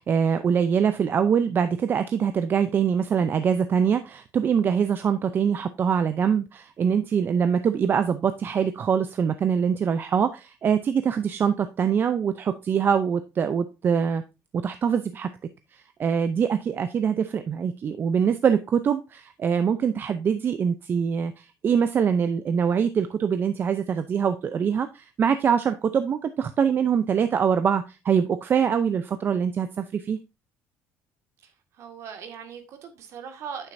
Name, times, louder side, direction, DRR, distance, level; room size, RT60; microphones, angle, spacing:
voice 1, 0.0-14.2 14.6-15.3 15.7-30.2, right 7 dB, 40° right, 0.6 m, -24 dB
voice 2, 31.4-33.7, right 7 dB, 60° right, 1.9 m, -40 dB
9.1 x 7.5 x 2.6 m
cardioid pair, 115°, 6 cm